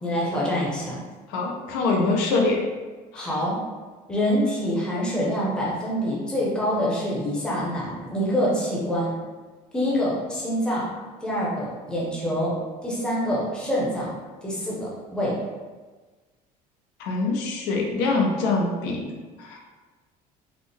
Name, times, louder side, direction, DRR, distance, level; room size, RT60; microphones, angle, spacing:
voice 1, 0.0-1.0 3.1-3.6 4.1-9.1 9.7-10.9 11.2-12.5 12.8-14.1 14.4-15.4, equal, 5° left, -6 dB, 0.7 m, -26 dB
voice 2, 1.3-2.6 3.1-3.3 17.0-19.0 19.4-19.6, left 3 dB, 85° left, 0 dB, 0.7 m, -24 dB
4.0 x 2.1 x 3.3 m, 1.3 s
cardioid pair, 170°, 16 cm